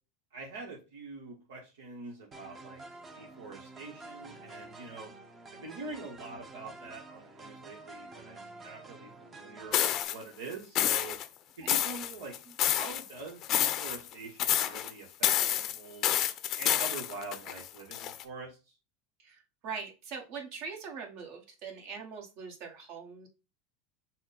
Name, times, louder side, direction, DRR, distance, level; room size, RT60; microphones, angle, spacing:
voice 1, 0.3-2.8 3.1-5.1 5.5-11.2 11.6-16.1 16.6-18.8, right 3 dB, 80° right, 0 dB, 1.1 m, -45 dB
sound 1, 2.3-10.0, right 2 dB, 25° right, 0.8 m, -49 dB
sound 2, 9.7-10.1 10.8-11.3 11.7-13.0 13.4-14.1 14.4-14.9 15.2-18.2, left 12 dB, 45° left, 0.6 m, -29 dB
voice 2, 19.2-23.3, right 5 dB, 55° right, 1 dB, 1.5 m, -42 dB
6.0 x 2.2 x 4.0 m, 0.30 s
hypercardioid pair, 105°, 0 cm